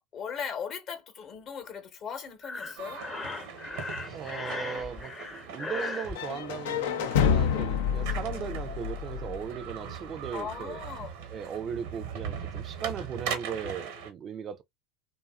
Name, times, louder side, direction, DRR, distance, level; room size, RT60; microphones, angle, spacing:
voice 1, 0.0-3.0 8.0-8.2 10.3-11.1, left 7 dB, 50° left, 0.8 m, -38 dB
Breathing, 2.4-6.2, left 3 dB, 20° left, 0.6 m, -37 dB
sound 1, 2.8-14.1, right 7 dB, 80° right, 0.8 m, -40 dB
voice 2, 4.1-10.8 11.3-14.6, right 8 dB, 40° right, 0.3 m, -38 dB
sound 2, 6.1-10.1, left 7 dB, 80° left, 0.4 m, -28 dB
2.6 x 2.4 x 2.3 m
hypercardioid pair, 90°, 0 cm